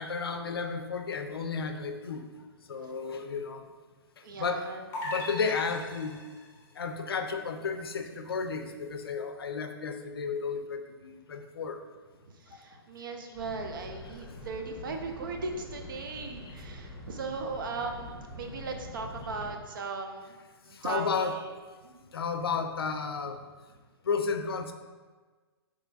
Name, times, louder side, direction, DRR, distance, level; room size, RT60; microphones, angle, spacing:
voice 1, 0.0-2.3 2.7-3.6 4.4-4.7 5.0-6.3 6.8-11.8 16.4-16.5 20.7-21.4 22.1-23.4 24.1-24.7, left 5 dB, 65° left, 6 dB, 0.5 m, -32 dB
voice 2, 4.2-4.9 12.3-20.3 20.6-21.3 21.8-22.0, right 3 dB, 55° right, 4 dB, 0.6 m, -38 dB
sound 1, 4.9-6.6, left 1 dB, 20° left, 0.5 m, -38 dB
sound 2, 13.3-19.5, left 1 dB, ahead, 1.4 m, -45 dB
6.4 x 3.1 x 2.5 m, 1.4 s
figure-of-eight pair, 115°, 13 cm